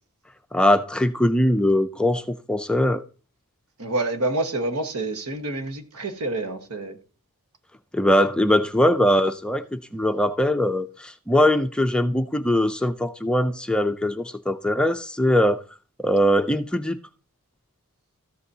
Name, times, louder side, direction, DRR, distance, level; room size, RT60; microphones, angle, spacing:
voice 1, 0.5-3.0 7.9-15.6 16.0-17.0, left 1 dB, 5° left, 0.4 m, -21 dB
voice 2, 3.8-7.0, right 2 dB, 85° right, 1.3 m, -27 dB
13.5 x 7.9 x 2.8 m
head